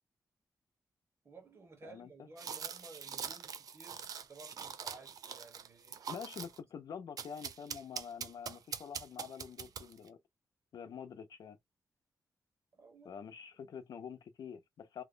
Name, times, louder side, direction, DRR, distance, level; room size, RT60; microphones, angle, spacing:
voice 1, 1.2-6.2 12.7-13.1 13.6-13.7, right 3 dB, 40° right, 1.4 m, -56 dB
voice 2, 1.8-2.3 6.1-10.2 10.7-11.6 13.0-15.0, left 7 dB, 80° left, 0.7 m, -47 dB
sound 1, 2.4-6.6 7.2-10.1, right 7 dB, 65° right, 0.4 m, -43 dB
2.9 x 2.3 x 3.8 m
wide cardioid pair, 140°, 7 cm